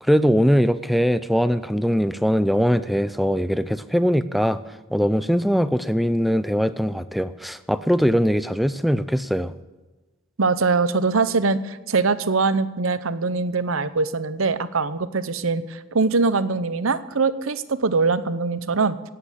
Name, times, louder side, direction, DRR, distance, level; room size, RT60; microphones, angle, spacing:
voice 1, 0.0-4.6 4.9-9.5, equal, ahead, 12 dB, 0.4 m, -21 dB
voice 2, 10.4-19.0, right 4 dB, 75° right, 14 dB, 0.8 m, -22 dB
17.0 x 8.8 x 8.3 m, 1.2 s
head